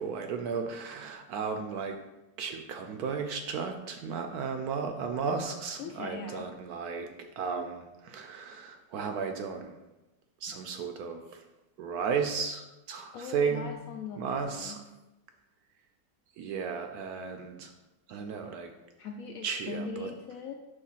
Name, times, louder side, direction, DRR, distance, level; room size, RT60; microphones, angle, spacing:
voice 1, 0.0-2.0 2.4-7.1 7.4-9.8 10.4-11.4 11.8-13.8 14.2-14.8 16.4-17.7 18.1-18.7 19.4-20.1, right 5 dB, 70° right, 5 dB, 0.9 m, -34 dB
voice 2, 5.8-6.5 13.1-14.9 19.0-20.5, left 4 dB, 75° left, 2 dB, 0.8 m, -40 dB
5.4 x 3.4 x 5.6 m, 1.0 s
omnidirectional pair, 1.9 m